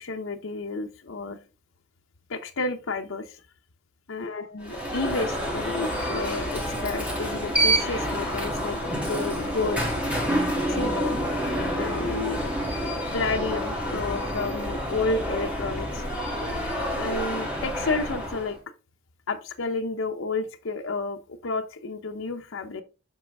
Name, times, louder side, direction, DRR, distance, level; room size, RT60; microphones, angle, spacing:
voice 1, 0.0-1.4 2.3-3.4 4.1-8.8 9.0-9.9 10.7-11.2 11.8-12.5 12.8-16.0 16.9-18.6 19.3-22.8, left 3 dB, 80° left, 0.8 m, -31 dB
Alarm, 4.6-18.6, equal, 5° right, 2.5 m, -28 dB
7.6 x 5.6 x 3.5 m
head